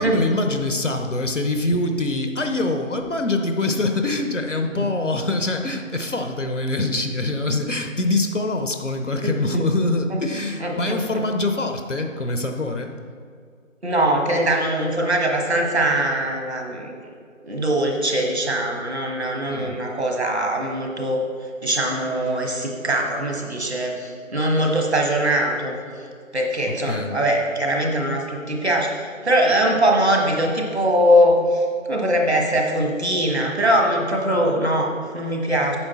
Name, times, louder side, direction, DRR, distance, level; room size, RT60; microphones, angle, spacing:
voice 1, 0.0-12.9 19.5-19.8 26.9-27.2, left 2 dB, 65° left, 5 dB, 0.9 m, -24 dB
voice 2, 9.2-9.6 10.1-10.2 10.6-11.2 13.8-16.9 17.4-21.2 21.6-25.7 26.3-35.8, right 1 dB, 50° right, 1 dB, 1.4 m, -22 dB
8.8 x 6.6 x 4.3 m, 2.1 s
figure-of-eight pair, 165°, 40 cm